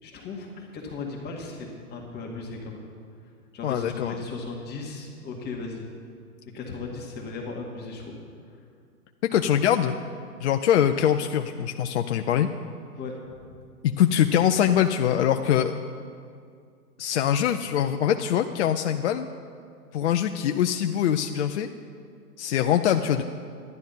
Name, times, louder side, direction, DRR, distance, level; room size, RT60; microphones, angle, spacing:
voice 1, 0.0-2.8 3.5-5.8 6.5-8.2 13.0-13.6, left 3 dB, 20° left, -1 dB, 1.8 m, -36 dB
voice 2, 3.6-4.2 9.3-10.0 10.4-12.5 13.8-15.7 17.0-19.3 19.9-21.7 22.4-23.2, left 10 dB, 45° left, 6 dB, 0.6 m, -23 dB
12.0 x 10.5 x 5.6 m, 2.2 s
hypercardioid pair, 125°, 47 cm